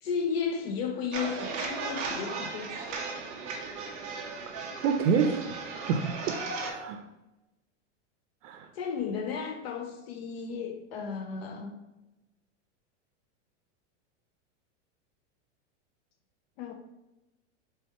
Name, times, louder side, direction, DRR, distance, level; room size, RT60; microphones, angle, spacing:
voice 1, 0.0-3.0 8.7-11.8 16.6-16.7, left 6 dB, 55° left, 0.5 m, -34 dB
sound 1, 1.1-6.7, right 4 dB, 20° right, 0.4 m, -36 dB
voice 2, 4.8-5.5 5.9-7.0 8.4-8.7, right 6 dB, 85° right, 0.5 m, -28 dB
4.4 x 3.4 x 2.9 m
supercardioid pair, 160°, 36 cm